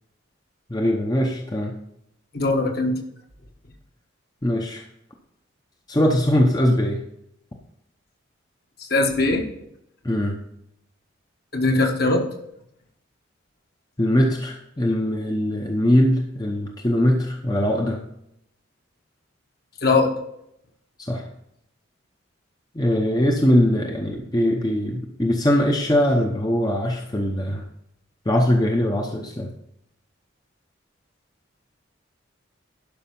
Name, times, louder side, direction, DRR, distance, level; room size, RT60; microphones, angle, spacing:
voice 1, 0.7-1.8 4.4-4.8 5.9-7.0 10.0-10.4 14.0-18.0 21.0-21.3 22.7-27.6 28.3-29.5, left 1 dB, 20° left, 2 dB, 0.8 m, -21 dB
voice 2, 2.3-2.9 8.8-9.4 11.5-12.2 19.8-20.1, left 2 dB, 50° left, 2 dB, 1.5 m, -20 dB
11.5 x 5.5 x 5.4 m, 0.77 s
head